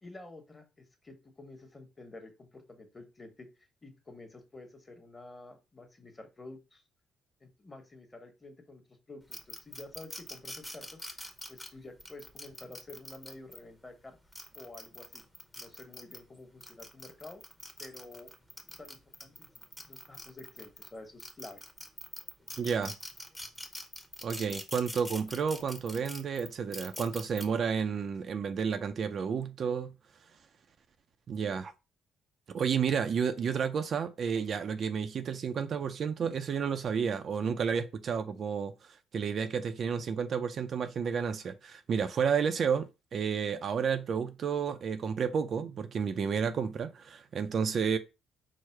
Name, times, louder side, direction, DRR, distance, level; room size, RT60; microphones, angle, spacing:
voice 1, 0.0-3.5 3.8-6.8 7.4-11.0 11.5-14.2 14.5-15.2 15.5-17.4 17.8-18.3 18.7-19.5 19.8-21.6 31.5-31.6, left 2 dB, 20° left, 1.2 m, -50 dB
sound 1, 9.3-13.6 14.2-16.2 16.6-20.9 21.2-27.4, equal, 5° left, 0.8 m, -44 dB
voice 2, 22.6-22.9 24.2-29.9 31.3-31.7 32.5-48.0, right 6 dB, 50° right, 0.4 m, -31 dB
4.7 x 2.1 x 4.5 m
cardioid pair, 100°, 0 cm